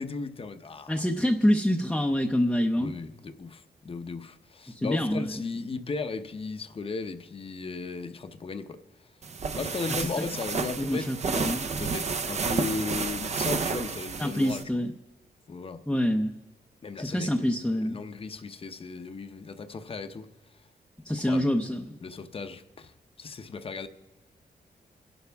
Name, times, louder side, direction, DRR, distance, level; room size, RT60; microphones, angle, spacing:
voice 1, 0.0-1.1 2.8-8.8 9.6-14.8 15.5-15.8 16.8-20.3 21.2-21.4 22.0-22.9 23.2-23.9, left 4 dB, 35° left, 0.8 m, -36 dB
voice 2, 0.9-2.9 4.7-5.3 9.9-10.1 10.8-11.7 14.2-14.9 15.9-16.3 17.0-18.0 21.0-22.0, equal, 5° left, 0.7 m, -26 dB
sound 1, 9.2-14.6, right 5 dB, 45° right, 0.7 m, -31 dB
28.5 x 11.5 x 3.5 m
wide cardioid pair, 145°, 17 cm